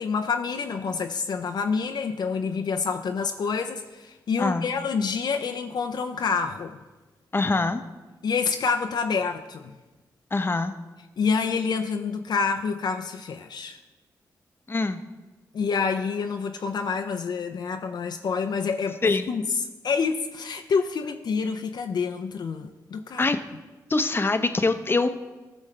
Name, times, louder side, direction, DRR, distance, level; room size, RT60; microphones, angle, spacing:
voice 1, 0.0-6.8 8.2-9.7 11.2-13.8 15.5-19.4 19.8-23.3, left 5 dB, 65° left, 5 dB, 0.5 m, -27 dB
voice 2, 7.3-7.8 10.3-10.7 14.7-15.0 19.0-19.2 23.2-23.4 23.9-25.1, left 3 dB, 30° left, 8 dB, 0.7 m, -23 dB
14.5 x 6.2 x 3.3 m, 1.2 s
cardioid pair, 60°, 8 cm